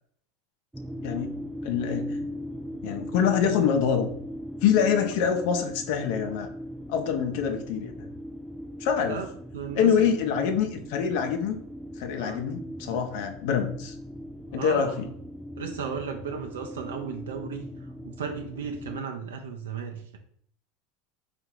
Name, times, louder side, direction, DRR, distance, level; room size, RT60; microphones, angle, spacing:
sound 1, 0.7-19.0, equal, 10° right, 0.3 m, -39 dB
voice 1, 1.0-1.3 1.6-2.2 2.8-4.1 4.6-6.5 6.9-8.1 8.8-9.2 9.7-11.6 12.0-14.0 14.5-15.1, left 7 dB, 65° left, 6 dB, 0.7 m, -25 dB
voice 2, 9.5-10.2 12.2-12.4 14.5-15.0 15.6-17.7 18.0-20.2, right 6 dB, 80° right, 4 dB, 0.5 m, -35 dB
3.7 x 2.6 x 4.5 m, 0.65 s
hypercardioid pair, 85°, 0 cm